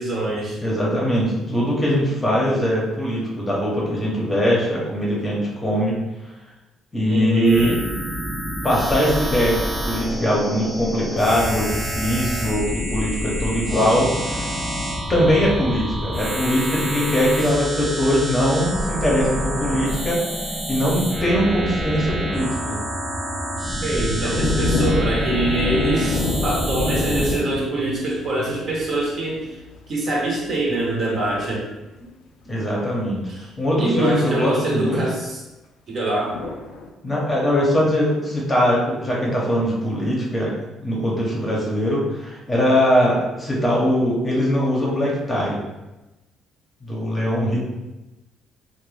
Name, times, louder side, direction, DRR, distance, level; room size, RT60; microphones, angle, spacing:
voice 1, 0.0-0.6 7.1-7.8 23.8-29.6 29.9-31.7 33.3-33.5 33.8-35.4 35.9-36.4, right 2 dB, 45° right, -3 dB, 0.8 m, -24 dB
voice 2, 0.6-6.0 6.9-7.8 8.6-14.5 15.1-22.8 24.2-24.5 32.5-35.0 37.0-40.5 40.8-45.6 46.8-47.6, equal, 20° left, -4 dB, 0.8 m, -21 dB
sound 1, 7.4-27.4, equal, 15° right, 0.4 m, -27 dB
sound 2, 24.0-29.8 36.3-36.9, left 2 dB, 80° left, 0.4 m, -26 dB
2.5 x 2.1 x 3.3 m, 1.0 s
cardioid pair, 115°, 0 cm